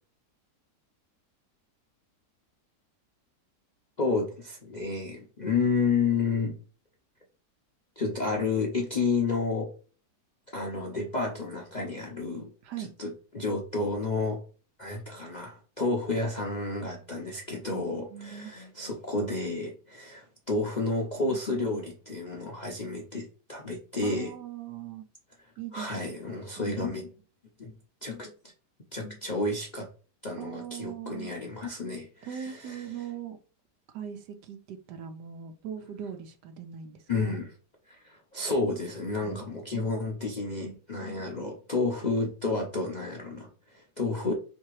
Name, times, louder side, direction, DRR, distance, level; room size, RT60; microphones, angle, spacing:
voice 1, 4.0-6.6 8.0-9.7 10.5-12.5 12.8-14.4 14.8-24.3 25.7-27.1 27.6-27.7 28.0-28.3 28.9-29.9 30.2-32.9 37.1-37.5 37.9-44.3, left 3 dB, 55° left, 0.5 m, -31 dB
voice 2, 18.1-18.5 24.0-25.0 25.6-26.1 26.6-26.7 30.4-31.3 32.3-33.4 33.9-37.4 39.2-39.9, right 9 dB, 85° right, 1.3 m, -40 dB
3.3 x 2.8 x 4.6 m
omnidirectional pair, 1.8 m